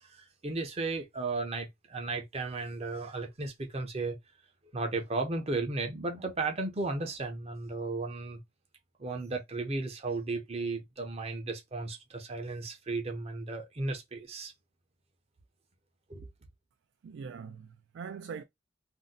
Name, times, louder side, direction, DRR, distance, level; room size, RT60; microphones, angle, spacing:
voice 1, 0.0-4.2 4.7-8.4 9.0-14.5 16.1-16.3, right 3 dB, 35° right, 0.6 m, -35 dB
voice 2, 17.0-18.4, right 6 dB, 70° right, 0.3 m, -42 dB
2.6 x 2.1 x 3.7 m
head